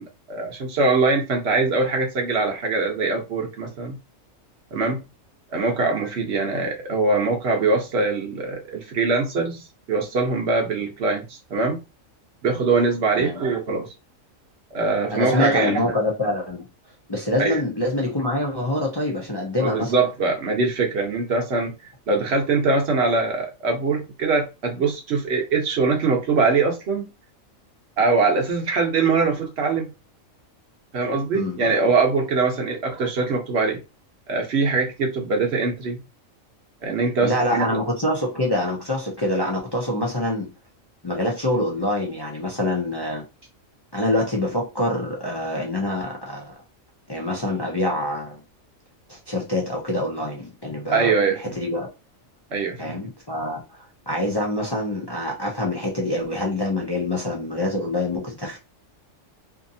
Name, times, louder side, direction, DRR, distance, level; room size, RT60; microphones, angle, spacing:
voice 1, 0.0-4.0 4.7-5.0 5.5-11.8 12.4-13.9 14.7-15.8 17.4-17.6 19.6-21.7 22.1-27.1 28.0-29.9 30.9-33.8 34.3-36.0 36.8-37.8 50.9-51.6 52.5-53.0, right 4 dB, 60° right, 1.0 m, -22 dB
voice 2, 15.1-16.6 17.1-19.9 31.3-31.6 37.2-40.5 41.0-43.2 43.9-46.6 47.1-48.4 49.1-51.9 52.8-58.6, left 1 dB, 35° left, 0.4 m, -25 dB
2.7 x 2.6 x 2.6 m
omnidirectional pair, 1.4 m